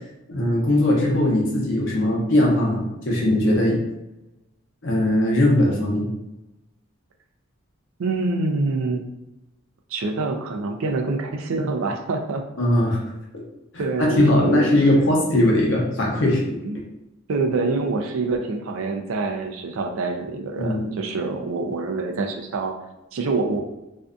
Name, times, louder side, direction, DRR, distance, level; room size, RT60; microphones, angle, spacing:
voice 1, 0.3-3.8 4.8-6.1 12.6-13.0 13.7-13.8 14.2-16.4 16.7-16.8 20.6-20.9, left 1 dB, 60° left, -3 dB, 0.7 m, -20 dB
voice 2, 8.0-9.1 9.9-12.4 13.8-14.7 16.6-16.8 17.3-22.7 23.1-23.6, right 3 dB, 70° right, 4 dB, 0.4 m, -25 dB
2.5 x 2.2 x 2.5 m, 0.95 s
head